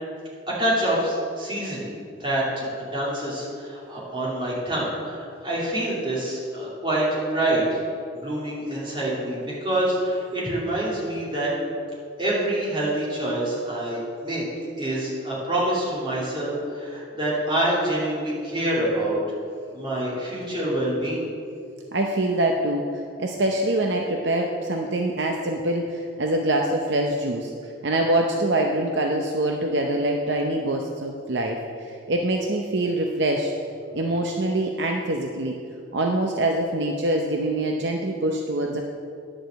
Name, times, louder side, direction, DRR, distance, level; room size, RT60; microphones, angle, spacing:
voice 1, 0.6-1.9 2.2-7.0 7.3-7.8 8.1-11.5 12.2-14.4 14.8-19.2 19.7-21.3, right 1 dB, 25° right, -7 dB, 2.8 m, -26 dB
voice 2, 21.9-27.5 27.8-33.5 33.9-35.6 35.9-38.8, right 1 dB, 60° right, 2 dB, 0.7 m, -24 dB
10.5 x 5.0 x 7.6 m, 2.4 s
head